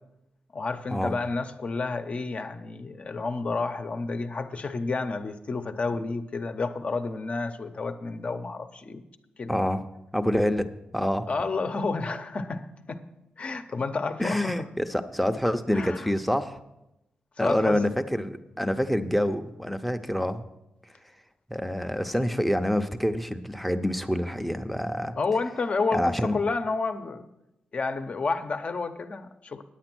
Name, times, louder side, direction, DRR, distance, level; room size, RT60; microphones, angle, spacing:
voice 1, 0.5-9.0 9.4-9.6 11.3-13.0 13.4-14.7 15.7-16.1 17.4-17.8 25.2-27.2 27.7-29.6, left 3 dB, 45° left, 8 dB, 0.8 m, -30 dB
voice 2, 9.5-9.8 10.1-11.3 14.2-16.6 17.4-20.4 21.5-25.1 25.9-26.4, equal, ahead, 8 dB, 0.7 m, -27 dB
10.0 x 8.5 x 6.1 m, 0.89 s
wide cardioid pair, 105°, 3 cm